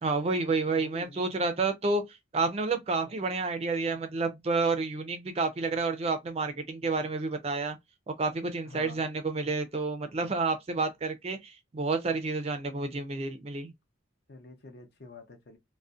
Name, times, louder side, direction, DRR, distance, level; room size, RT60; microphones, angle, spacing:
voice 1, 0.0-2.0 2.3-7.8 8.1-13.7, right 3 dB, 30° right, 0.4 m, -30 dB
voice 2, 0.7-1.3 8.6-9.0 14.3-15.6, left 2 dB, 55° left, 0.7 m, -48 dB
2.4 x 2.1 x 2.4 m
head